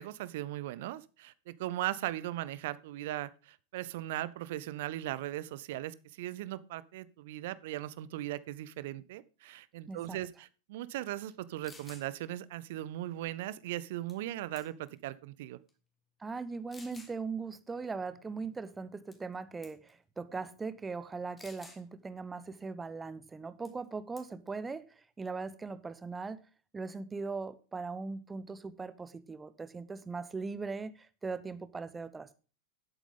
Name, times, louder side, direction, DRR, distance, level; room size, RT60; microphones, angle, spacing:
voice 1, 0.0-15.6, right 14 dB, 50° right, 18 dB, 0.7 m, -38 dB
voice 2, 9.9-10.2 16.2-26.4 26.7-32.4, right 4 dB, 15° right, 13 dB, 0.9 m, -40 dB
sound 1, 11.3-11.4 11.6-12.1 14.1-14.3 14.6-15.0 15.7-15.8 16.7-17.2 19.1-19.4 19.6-19.9 21.4-21.8 23.7-23.9 24.2-24.5, left 3 dB, 15° left, 2.3 m, -53 dB
11.0 x 8.4 x 3.8 m, 0.35 s
figure-of-eight pair, 90°, 0 cm